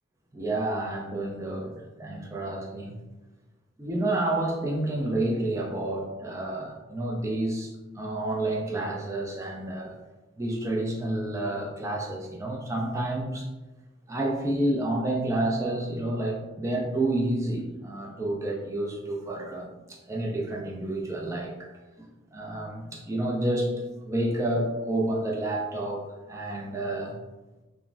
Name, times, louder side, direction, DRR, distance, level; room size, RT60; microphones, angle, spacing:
voice 1, 0.3-1.7 2.0-3.0 3.8-7.7 8.0-9.9 10.4-13.5 14.1-21.7 22.0-22.1 22.3-23.8 24.0-27.2, right 1 dB, 15° right, -1 dB, 0.4 m, -29 dB
3.5 x 2.1 x 2.4 m, 1.1 s
head